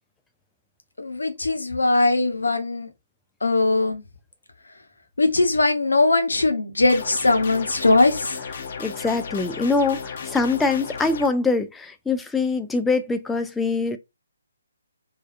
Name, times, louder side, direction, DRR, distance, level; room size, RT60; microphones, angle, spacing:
voice 1, 1.0-2.9 3.4-4.0 5.2-8.4, left 2 dB, 80° left, 0.8 m, -20 dB
sound 1, 6.9-11.3, left 6 dB, 50° left, 0.6 m, -34 dB
voice 2, 8.8-14.0, left 4 dB, 5° left, 0.3 m, -23 dB
3.3 x 2.3 x 2.4 m
figure-of-eight pair, 145°, 0 cm